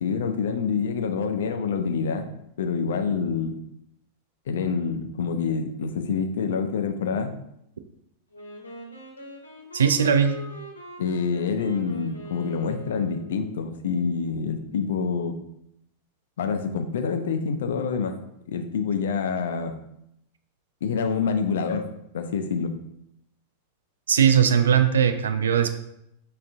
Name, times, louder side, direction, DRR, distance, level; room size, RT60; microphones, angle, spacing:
voice 1, 0.0-2.3 2.6-3.6 4.5-7.3 11.0-15.4 16.4-18.2 18.5-19.7 20.8-22.7, left 5 dB, 60° left, 7 dB, 0.4 m, -27 dB
Wind instrument woodwind instrument, 8.3-13.5, right 1 dB, 80° left, 0.8 m, -42 dB
voice 2, 9.7-10.3 24.1-25.8, right 8 dB, 65° right, 9 dB, 0.3 m, -19 dB
5.0 x 2.5 x 3.4 m, 0.79 s
figure-of-eight pair, 90°, 0 cm